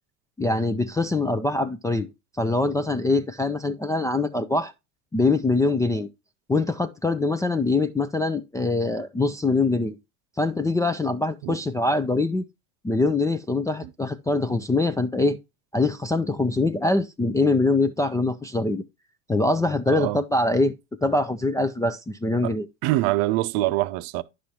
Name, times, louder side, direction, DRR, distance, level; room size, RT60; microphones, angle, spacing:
voice 1, 0.4-2.1 2.4-4.7 5.1-6.1 6.5-10.0 10.4-12.4 12.8-15.4 15.7-18.8 19.3-20.7 21.0-22.7, left 2 dB, 10° left, 0.3 m, -23 dB
voice 2, 19.9-20.2 22.4-22.5 22.8-24.2, right 17 dB, 60° right, 0.7 m, -24 dB
10.0 x 6.2 x 2.8 m
hypercardioid pair, 95°, 42 cm